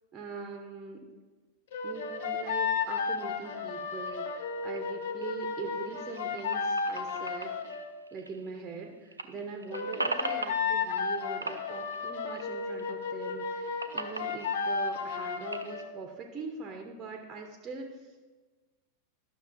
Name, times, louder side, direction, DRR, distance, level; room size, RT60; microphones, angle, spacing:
voice 1, 0.1-1.1 1.8-7.5 8.1-18.3, right 4 dB, 25° right, 3 dB, 0.8 m, -42 dB
sound 1, 1.7-7.9 9.7-15.9, left 5 dB, 55° left, 0.6 m, -33 dB
sound 2, 4.1-8.8 9.1-11.2 11.4-12.9 13.2-15.8, right 2 dB, 80° right, 0.4 m, -40 dB
11.5 x 6.3 x 2.6 m, 1.3 s
figure-of-eight pair, 90°, 0 cm